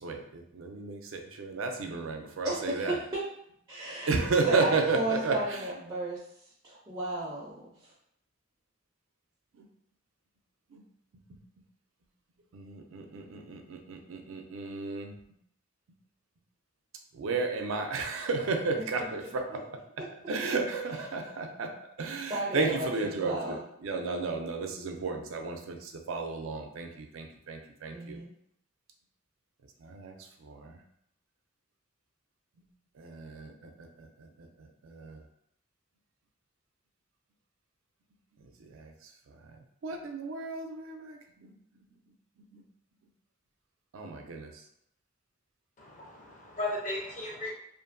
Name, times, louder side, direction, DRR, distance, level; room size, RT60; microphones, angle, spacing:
voice 1, 0.0-3.0 4.1-5.7 9.5-9.7 10.7-10.8 12.5-15.2 17.1-28.2 29.8-30.8 33.0-35.2 38.6-39.6 39.8-41.5 42.4-42.6 43.9-44.6, right 3 dB, 80° right, 4 dB, 0.4 m, -33 dB
voice 2, 2.4-3.2 3.7-6.2 6.6-7.7 22.3-22.9 23.2-23.6 27.9-28.3, right 2 dB, 25° right, -6 dB, 0.4 m, -33 dB
voice 3, 45.8-47.5, left 2 dB, 40° left, -2 dB, 0.6 m, -36 dB
2.7 x 2.5 x 2.5 m, 0.73 s
head